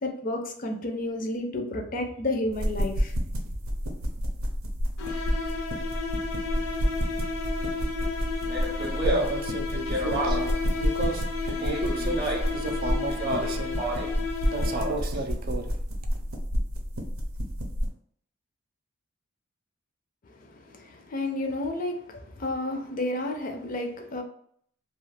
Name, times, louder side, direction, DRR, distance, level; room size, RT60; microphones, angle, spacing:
voice 1, 0.0-3.1 20.3-24.2, left 1 dB, 40° left, 0.5 m, -31 dB
sound 1, 2.5-17.9, equal, 90° right, 0.6 m, -30 dB
sound 2, 5.0-15.2, left 4 dB, 85° left, 0.6 m, -33 dB
Speech, 8.4-10.6 11.4-12.6 13.1-14.2 14.5-15.2, right 1 dB, 25° right, 0.8 m, -31 dB
voice 2, 9.0-13.8 14.5-15.7, right 3 dB, 45° right, 0.4 m, -34 dB
2.4 x 2.4 x 3.2 m
head